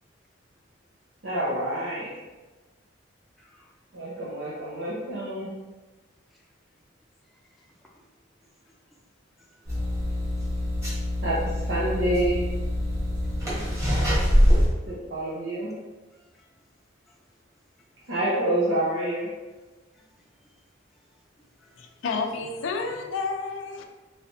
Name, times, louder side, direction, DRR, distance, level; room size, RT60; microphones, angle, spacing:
voice 1, 1.2-2.2 3.9-5.5 11.2-12.4 14.9-15.7 18.1-19.3, right 1 dB, 75° right, -8 dB, 0.7 m, -27 dB
voice 2, 3.4-3.7 6.3-6.4 7.2-8.0 8.7-8.8 9.4-9.8 10.2-10.9 13.2-13.5 16.1-16.5 17.1-17.2 19.9-20.6 20.9-21.1 21.6-21.9 22.9-23.0, equal, ahead, -4 dB, 0.5 m, -62 dB
sound 1, 9.7-14.7, equal, 15° right, 1.2 m, -24 dB
voice 3, 21.8-23.8, left 4 dB, 80° left, 4 dB, 0.4 m, -30 dB
3.2 x 3.2 x 2.7 m, 1.2 s
head